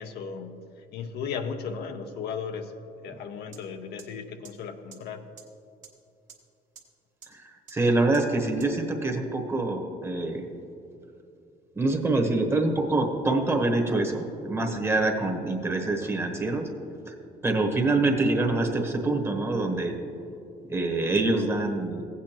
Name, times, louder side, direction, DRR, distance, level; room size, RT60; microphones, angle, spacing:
voice 1, 0.0-2.7 3.0-5.3, left 6 dB, 75° left, 6 dB, 0.7 m, -36 dB
sound 1, 3.5-3.6 4.0-4.1 4.4-4.5 4.9-5.0 5.4-5.5 5.8-5.9 6.3-6.4 6.8-6.9 7.2-7.3 7.7-7.8 8.1-8.2 8.6-8.7, right 7 dB, 50° right, 1.3 m, -46 dB
voice 2, 7.3-10.4 11.7-16.7 17.0-17.1 17.4-20.0 20.7-22.0, right 2 dB, 15° right, 3 dB, 1.1 m, -25 dB
15.5 x 8.4 x 3.0 m, 2.7 s
cardioid pair, 110°, 17 cm